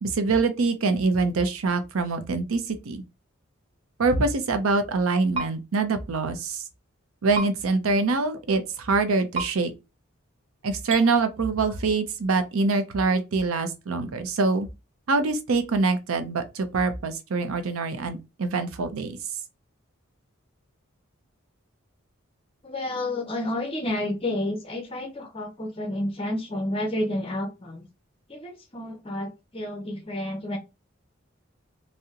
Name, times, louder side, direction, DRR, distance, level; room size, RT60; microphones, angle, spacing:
voice 1, 0.0-3.0 4.0-6.6 7.2-9.7 10.6-14.7 15.1-19.2, right 3 dB, 90° right, 0.6 m, -24 dB
sound 1, 5.3-5.5 7.3-7.5 9.3-9.5 10.9-11.0, right 3 dB, 30° right, 0.6 m, -28 dB
voice 2, 22.6-27.9 28.3-30.6, left 1 dB, 25° left, 0.6 m, -30 dB
2.8 x 2.0 x 3.6 m
head